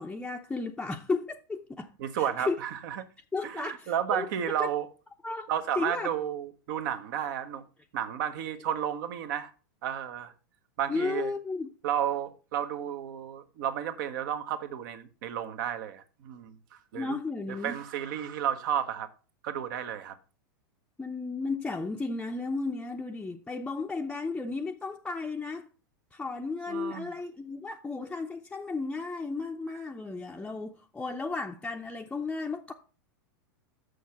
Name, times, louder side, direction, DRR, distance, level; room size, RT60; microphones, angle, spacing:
voice 1, 0.0-1.9 2.2-2.6 3.3-4.3 4.6-4.7 5.2-5.5 5.8-6.1 10.9-11.7 16.9-17.8 21.0-25.7 26.1-32.7, left 3 dB, 10° left, 0.6 m, -34 dB
voice 2, 2.0-3.1 3.4-4.9 5.5-7.6 7.9-9.5 9.8-10.3 10.8-11.3 11.8-16.6 16.9-17.2 17.5-19.1 19.4-20.2 26.7-27.1, right 9 dB, 60° right, 1.2 m, -32 dB
6.6 x 6.5 x 5.8 m
hypercardioid pair, 110°, 12 cm